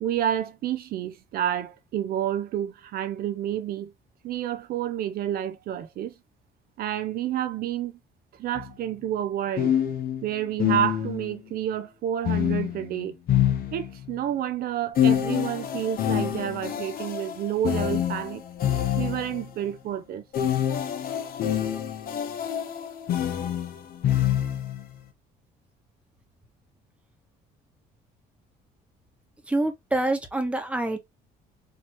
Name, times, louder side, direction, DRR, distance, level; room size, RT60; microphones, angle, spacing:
voice 1, 0.0-3.9 4.2-6.1 6.8-7.9 8.3-9.7 10.2-13.2 13.7-18.4 19.0-20.2, right 11 dB, 60° right, 0.5 m, -29 dB
sound 1, 8.5-8.7 9.6-11.4 12.2-14.2 14.9-19.5 20.3-24.8, left 10 dB, 60° left, 0.9 m, -26 dB
voice 2, 29.5-31.0, right 2 dB, 5° right, 1.1 m, -26 dB
4.4 x 2.9 x 3.0 m
cardioid pair, 110°, 17 cm